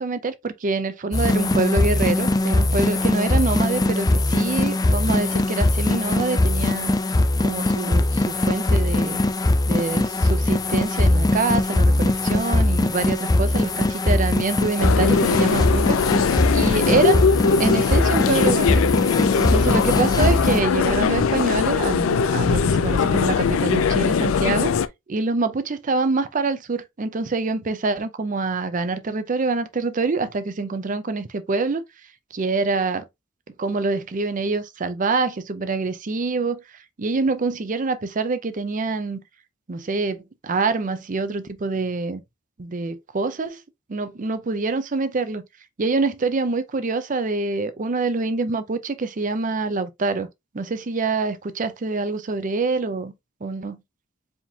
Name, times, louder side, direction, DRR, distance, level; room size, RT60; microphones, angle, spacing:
voice 1, 0.0-6.9 7.4-9.2 9.7-16.0 16.5-17.2 17.6-18.9 19.4-24.7 25.1-31.8 32.3-33.0 33.6-36.6 37.0-39.2 39.7-42.2 42.6-43.6 43.9-45.4 45.8-50.3 50.5-53.1 53.4-53.8, right 3 dB, 40° right, 0.5 m, -25 dB
sound 1, 1.1-20.6, left 2 dB, 20° left, 0.4 m, -21 dB
sound 2, 14.8-24.9, left 5 dB, 80° left, 0.4 m, -21 dB
4.9 x 3.7 x 2.7 m
head